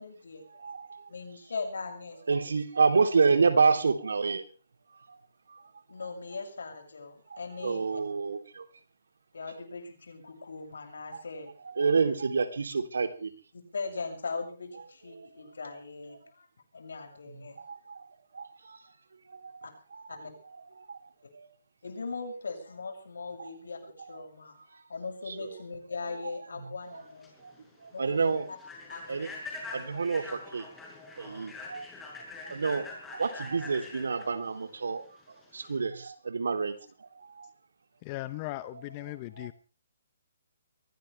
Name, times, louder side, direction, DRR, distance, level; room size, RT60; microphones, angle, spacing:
voice 1, 0.0-0.6 1.1-2.2 2.5-2.6 5.9-8.0 9.3-11.5 13.5-16.5 16.7-17.6 19.6-19.7 20.1-20.3 21.8-23.8 24.1-24.5 24.9-27.3 27.9-28.6 28.9-29.3 29.8-30.1, left 4 dB, 80° left, 4 dB, 7.0 m, -40 dB
voice 2, 0.6-1.1 2.3-4.4 5.5-5.6 7.3-8.7 11.1-11.2 11.7-13.3 15.1-15.3 17.3-18.1 18.3-18.8 19.3-19.6 19.9-20.3 20.8-21.0 21.3-21.5 23.4-23.5 24.7-24.8 25.3-25.6 26.9-27.0 27.4-27.5 27.8-28.5 29.1-29.3 29.7-30.7 31.0-31.9 32.4-37.5 39.4-39.5, right 4 dB, 85° right, 7 dB, 3.1 m, -29 dB
Human voice / Train, 26.9-35.8, left 2 dB, 10° left, 6.5 m, -44 dB
voice 3, 38.0-39.5, left 17 dB, 30° left, 13 dB, 0.8 m, -38 dB
23.5 x 17.5 x 3.4 m, 0.35 s
hypercardioid pair, 155°, 0 cm